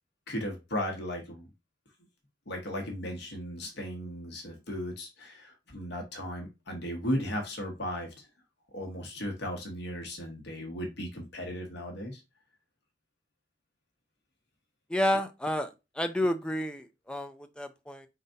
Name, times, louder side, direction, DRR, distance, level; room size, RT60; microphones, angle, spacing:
voice 1, 0.3-1.5 2.5-8.3 8.7-12.2, equal, 60° left, 1.3 m, -36 dB
voice 2, 14.9-15.7 16.0-18.1, left 1 dB, 5° left, 0.4 m, -30 dB
5.0 x 4.0 x 2.6 m
head